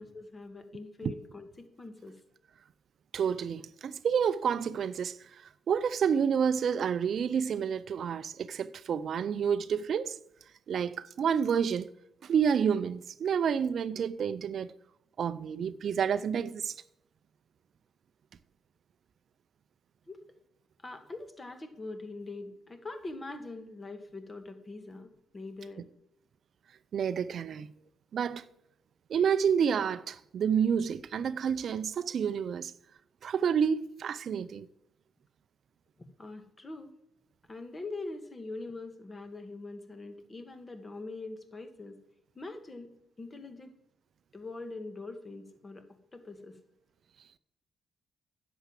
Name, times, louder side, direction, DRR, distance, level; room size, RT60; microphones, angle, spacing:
voice 1, 0.0-2.2 20.1-20.2 20.8-25.9 36.0-36.9 37.5-42.0 42.4-42.9 43.2-43.7 44.3-45.9 46.1-46.6, left 2 dB, 30° left, 2.1 m, -43 dB
voice 2, 3.1-10.2 10.7-11.9 12.2-14.7 15.2-16.7 26.9-27.7 28.1-28.4 29.1-32.7 33.2-34.7, right 7 dB, 65° right, 0.5 m, -29 dB
10.5 x 7.0 x 7.5 m
supercardioid pair, 50°, 0 cm